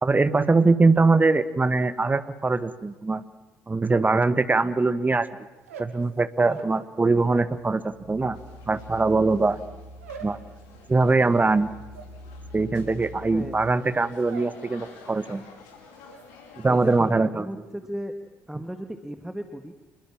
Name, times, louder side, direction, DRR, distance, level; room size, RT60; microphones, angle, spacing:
voice 1, 0.0-3.3 3.7-5.3 5.8-8.4 8.7-9.6 10.2-10.4 10.9-11.7 12.5-15.5 16.6-17.5, right 3 dB, 20° right, 13 dB, 1.7 m, -22 dB
sound 1, 5.5-7.6 7.9-14.7 15.0-15.5 15.7-16.3, right 5 dB, 80° right, 2.8 m, -46 dB
sound 2, 7.4-13.7, left 1 dB, 85° left, 3.9 m, -45 dB
sound 3, 8.3-17.0, left 5 dB, 65° left, 5.5 m, -51 dB
voice 2, 16.7-18.1 18.5-19.7, right 1 dB, 5° right, 7 dB, 2.1 m, -36 dB
28.5 x 21.5 x 7.6 m, 1.1 s
figure-of-eight pair, 50°, 8 cm